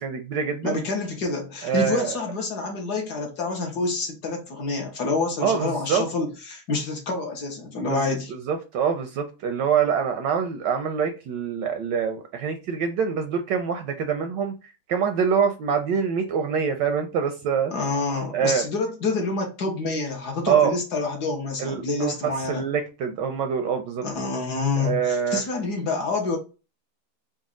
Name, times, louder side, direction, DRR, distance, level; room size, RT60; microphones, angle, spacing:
voice 1, 0.0-0.8 1.6-2.2 5.4-6.0 7.8-8.0 8.3-14.5 14.9-17.7 18.3-18.7 20.5-20.8 21.6-24.0 24.8-25.4, right 7 dB, 75° right, 1.1 m, -25 dB
voice 2, 0.6-8.3 17.7-22.6 24.0-26.4, left 3 dB, 60° left, 1.4 m, -27 dB
4.0 x 2.3 x 3.7 m
omnidirectional pair, 2.2 m